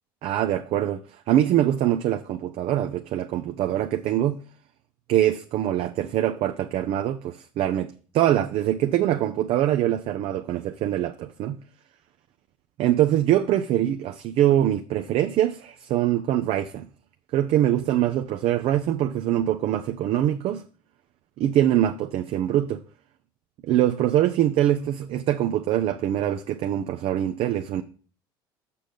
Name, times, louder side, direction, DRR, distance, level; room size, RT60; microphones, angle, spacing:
voice 1, 0.2-4.4 5.1-11.6 12.8-16.9 17.3-20.6 21.4-22.8 23.6-27.8, right 12 dB, 55° right, 0.6 m, -23 dB
6.9 x 6.3 x 5.2 m
hypercardioid pair, 70°, 12 cm